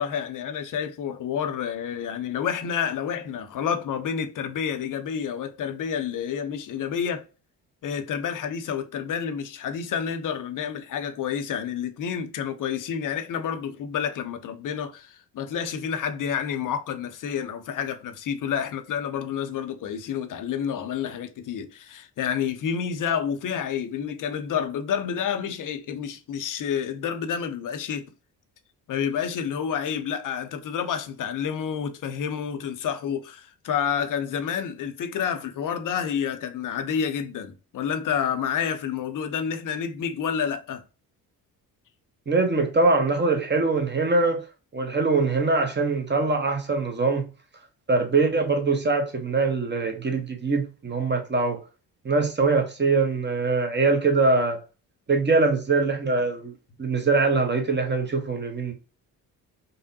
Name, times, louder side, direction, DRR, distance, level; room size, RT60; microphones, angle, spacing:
voice 1, 0.0-7.2 7.8-28.1 28.9-40.8, left 7 dB, 40° left, 0.7 m, -29 dB
voice 2, 42.3-44.5 44.7-47.3 47.9-51.6 52.0-54.6 55.1-56.5 56.8-58.7, right 3 dB, 20° right, 1.0 m, -23 dB
5.2 x 2.1 x 2.7 m
figure-of-eight pair, 45°, 48 cm